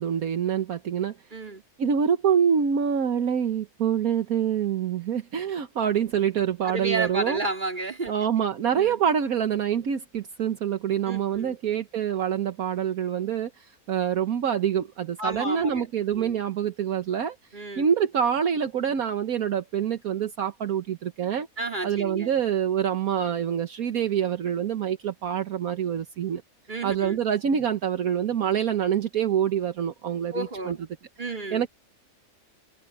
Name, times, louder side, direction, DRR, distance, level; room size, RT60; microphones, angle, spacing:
voice 1, 0.0-1.1 1.8-7.4 8.1-21.5 21.8-26.4 26.8-30.8 31.5-31.7, right 8 dB, 70° right, 1.5 m, -26 dB
voice 2, 1.3-1.6 6.6-8.1 8.7-9.0 11.1-11.6 15.2-15.9 16.1-16.4 17.5-17.9 21.6-22.3 26.7-27.2 30.3-30.8 31.2-31.6, right 2 dB, 30° right, 3.3 m, -32 dB
omnidirectional pair, 1.6 m